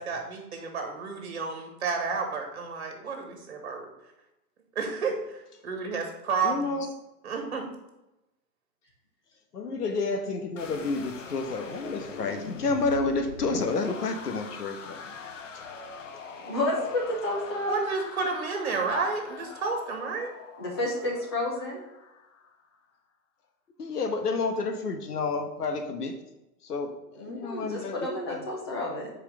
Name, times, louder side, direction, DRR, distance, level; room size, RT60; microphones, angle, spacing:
voice 1, 0.0-3.1 3.6-3.8 4.8-6.7 7.2-7.6 17.7-20.3, right 4 dB, 40° right, 3 dB, 2.1 m, -31 dB
voice 2, 6.4-6.9 9.5-15.1 15.5-15.6 23.8-26.1 26.6-26.9 27.2-28.0 28.3-28.4, left 3 dB, 65° left, 5 dB, 1.4 m, -30 dB
sound 1, 10.6-22.6, left 5 dB, 50° left, 0.9 m, -43 dB
voice 3, 16.4-17.9 20.6-21.8 27.1-29.1, left 1 dB, 15° left, -2 dB, 1.0 m, -30 dB
6.4 x 4.9 x 6.4 m, 0.94 s
hypercardioid pair, 170°, 50 cm